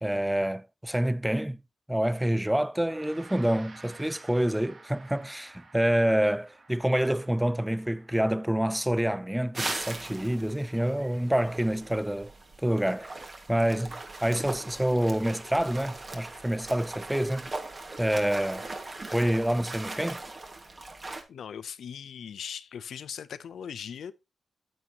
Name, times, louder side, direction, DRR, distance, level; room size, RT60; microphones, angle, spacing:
voice 1, 0.0-1.6 1.9-12.3 12.6-17.5 18.0-18.7 19.1-20.2, right 1 dB, 5° right, 0.4 m, -27 dB
Gong, 2.7-12.4, right 3 dB, 60° right, 1.9 m, -54 dB
sound 1, 9.5-21.2, right 2 dB, 40° right, 1.7 m, -40 dB
voice 2, 21.3-24.1, left 8 dB, 85° left, 0.5 m, -39 dB
9.2 x 8.7 x 2.9 m
cardioid pair, 60°, 0 cm